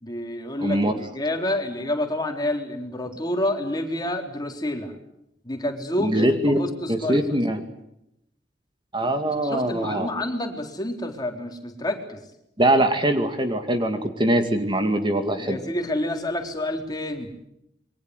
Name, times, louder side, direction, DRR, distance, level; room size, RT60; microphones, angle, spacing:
voice 1, 0.0-4.9 5.4-7.2 9.4-12.2 15.4-17.3, left 1 dB, 25° left, 4 dB, 4.0 m, -28 dB
voice 2, 0.6-0.9 6.0-6.6 6.9-7.6 8.9-10.1 12.6-15.6, right 1 dB, 30° right, 7 dB, 2.3 m, -22 dB
27.5 x 23.5 x 8.1 m, 0.81 s
head